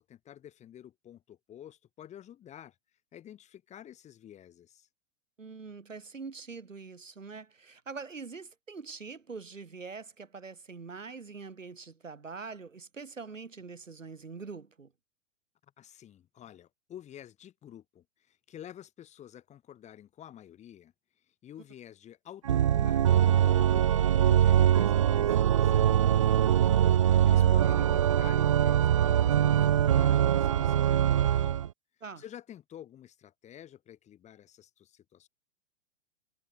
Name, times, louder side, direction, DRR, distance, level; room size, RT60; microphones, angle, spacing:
voice 1, 0.0-2.7 3.1-4.9 15.8-20.9 21.4-23.3 23.6-26.8 27.3-31.5 32.2-35.3, left 10 dB, 20° left, 2.2 m, -49 dB
voice 2, 5.4-14.9 27.3-27.8 32.0-32.2, right 4 dB, 75° right, 2.2 m, -44 dB
Organ, 22.5-31.7, right 10 dB, 30° right, 0.3 m, -23 dB
figure-of-eight pair, 110°, 38 cm